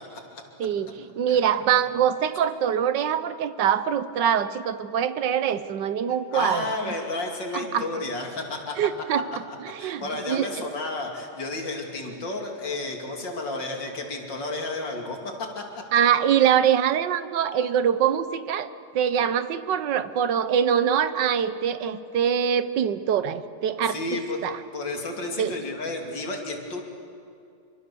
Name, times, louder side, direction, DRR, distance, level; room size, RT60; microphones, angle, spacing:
voice 1, 0.6-6.6 7.5-7.9 8.8-9.2 9.6-10.5 15.9-18.7 18.9-24.0 24.4-24.6 25.4-25.6, right 8 dB, 80° right, 13 dB, 1.6 m, -24 dB
voice 2, 6.3-8.8 9.8-15.6 23.8-26.8, left 2 dB, 90° left, 1 dB, 3.4 m, -32 dB
26.5 x 24.5 x 6.9 m, 2.5 s
omnidirectional pair, 1.9 m